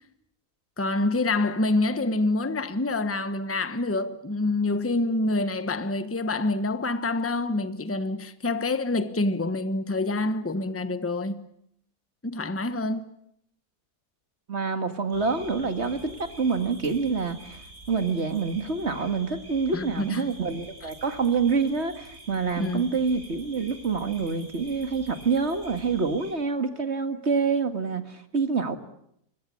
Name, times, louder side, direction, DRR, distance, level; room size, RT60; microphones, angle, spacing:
voice 1, 0.8-11.4 12.2-13.1 19.7-20.3 22.6-23.0, left 2 dB, 10° left, 1.1 m, -27 dB
voice 2, 14.5-17.6 17.9-28.8, right 5 dB, 45° right, 2.2 m, -27 dB
sound 1, 15.1-26.3, right 2 dB, 70° right, 7.0 m, -47 dB
25.5 x 21.5 x 8.7 m
omnidirectional pair, 1.6 m